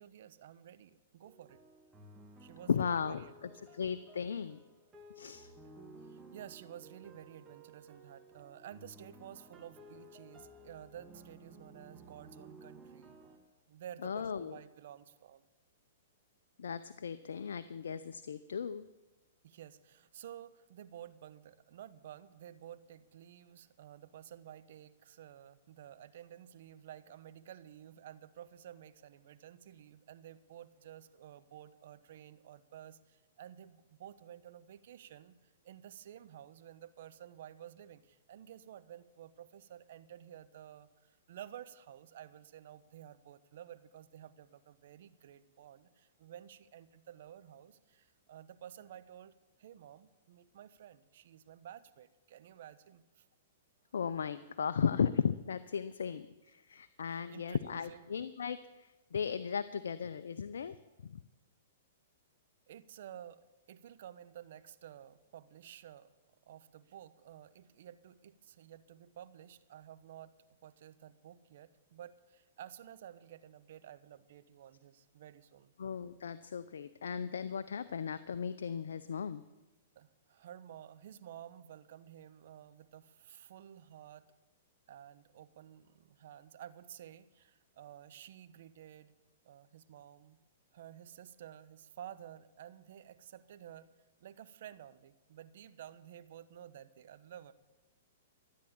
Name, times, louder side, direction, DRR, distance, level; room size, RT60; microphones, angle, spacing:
voice 1, 0.0-1.6 2.4-3.8 5.3-5.6 6.0-13.2 13.7-15.4 19.4-49.3 49.6-53.2 57.0-58.1 60.8-60.9 62.7-66.1 66.4-70.3 70.6-75.7 79.9-84.3 84.9-89.1 89.4-90.4 90.7-93.9 94.2-97.5, right 10 dB, 65° right, 14 dB, 0.9 m, -52 dB
sound 1, 1.2-13.4, right 1 dB, 15° right, 2.3 m, -56 dB
voice 2, 2.7-4.6 5.2-5.5 14.0-14.6 16.6-18.9 53.9-60.8 61.0-61.1 75.8-79.4, left 7 dB, 80° left, 12 dB, 0.6 m, -36 dB
13.5 x 9.5 x 8.7 m, 1.1 s
hypercardioid pair, 125°, 0 cm